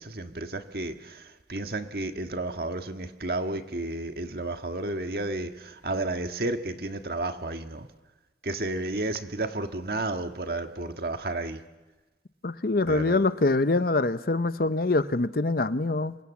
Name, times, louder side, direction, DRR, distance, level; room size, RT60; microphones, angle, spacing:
voice 1, 0.0-7.9 8.4-11.6 12.8-13.2, right 2 dB, 60° right, 6 dB, 1.6 m, -32 dB
voice 2, 12.4-16.2, left 2 dB, 55° left, 13 dB, 0.8 m, -24 dB
27.0 x 23.0 x 7.3 m, 1.2 s
head